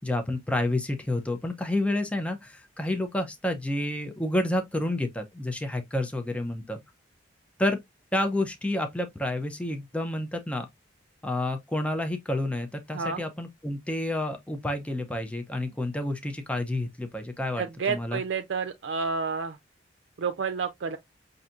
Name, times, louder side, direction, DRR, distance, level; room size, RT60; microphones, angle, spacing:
voice 1, 0.0-6.8 7.6-7.8 8.1-10.7 11.2-18.2, left 1 dB, 5° left, 0.5 m, -29 dB
voice 2, 17.6-19.6 20.2-21.0, right 5 dB, 70° right, 0.5 m, -30 dB
5.6 x 2.6 x 2.5 m
head